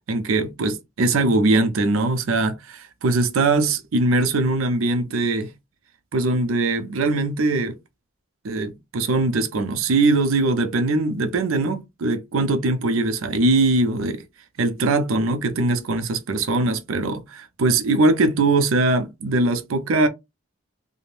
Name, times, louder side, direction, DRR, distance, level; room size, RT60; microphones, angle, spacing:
voice 1, 0.1-5.5 6.1-7.8 8.4-14.2 14.6-20.1, right 2 dB, 90° right, 0.5 m, -21 dB
3.2 x 2.1 x 2.5 m
head